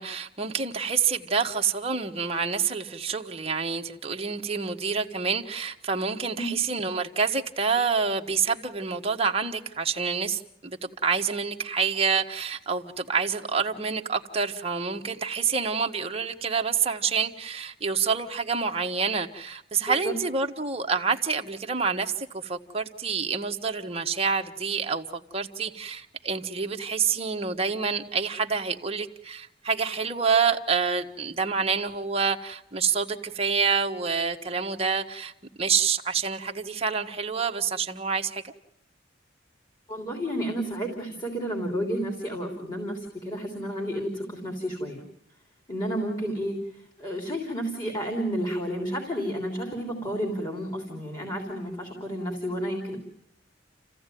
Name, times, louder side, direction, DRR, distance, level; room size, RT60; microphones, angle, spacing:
voice 1, 0.0-35.3 35.6-38.5, right 5 dB, 30° right, 3 dB, 1.4 m, -27 dB
voice 2, 39.9-45.0 45.7-53.0, equal, 20° left, 1 dB, 3.4 m, -31 dB
29.0 x 15.5 x 9.2 m, 0.82 s
head